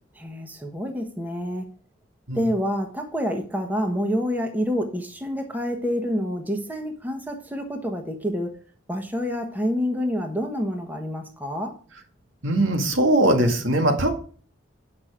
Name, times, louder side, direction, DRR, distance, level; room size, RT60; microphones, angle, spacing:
voice 1, 0.1-1.7 2.3-8.5 8.9-11.7, equal, 10° right, 3 dB, 1.1 m, -27 dB
voice 2, 12.4-14.2, right 1 dB, 90° right, 3 dB, 2.0 m, -20 dB
8.7 x 5.9 x 5.0 m, 0.42 s
head